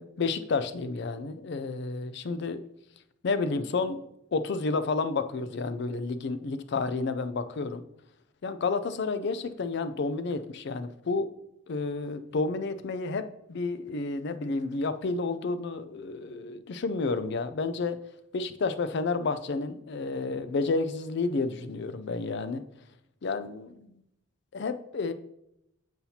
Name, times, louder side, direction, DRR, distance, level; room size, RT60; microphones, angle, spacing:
voice 1, 0.0-2.6 3.2-4.0 4.3-7.8 8.4-11.3 11.7-18.0 18.3-22.6 23.2-24.0 24.5-25.1, left 3 dB, 55° left, 12 dB, 0.4 m, -30 dB
7.2 x 5.7 x 2.8 m, 0.81 s
head